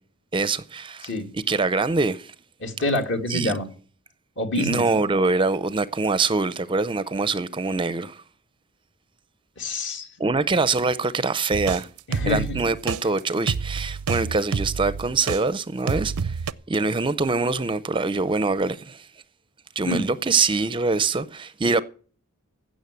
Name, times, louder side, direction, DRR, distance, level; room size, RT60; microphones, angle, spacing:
voice 1, 0.3-2.3 3.3-3.5 4.6-8.2 10.2-11.9 12.3-16.4 16.7-19.0 19.8-21.8, right 3 dB, 25° right, 0.5 m, -24 dB
voice 2, 2.6-3.7 4.4-4.8 9.6-10.1 12.1-12.6 19.8-20.1, left 1 dB, 60° left, 2.4 m, -26 dB
sound 1, 11.5-15.4 15.9-16.5, right 5 dB, 85° right, 0.6 m, -28 dB
16.0 x 6.3 x 8.3 m
head